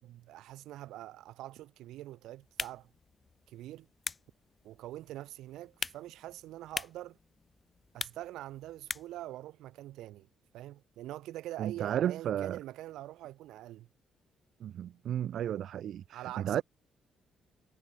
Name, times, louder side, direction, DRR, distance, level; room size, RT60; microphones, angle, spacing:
voice 1, 0.0-2.9 3.5-3.9 4.6-7.2 7.9-10.3 10.5-13.9 16.1-16.6, right 14 dB, 85° right, 4.7 m, -44 dB
sound 1, 2.4-9.3, left 4 dB, 30° left, 2.6 m, -43 dB
voice 2, 11.6-12.6 14.6-16.6, right 10 dB, 70° right, 0.8 m, -33 dB
cardioid pair, 90°, 0 cm